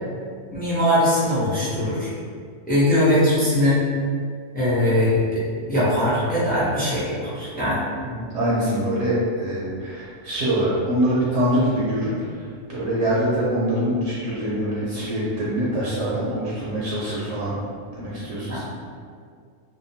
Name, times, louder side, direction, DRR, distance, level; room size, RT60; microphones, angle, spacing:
voice 1, 0.5-2.1 2.7-3.8 4.5-5.4 5.7-7.8 18.5-18.6, left 1 dB, 15° left, -10 dB, 0.3 m, -21 dB
voice 2, 8.0-17.5 17.9-18.6, right 1 dB, 70° right, -7 dB, 0.9 m, -24 dB
2.7 x 2.1 x 2.6 m, 2.1 s
omnidirectional pair, 1.4 m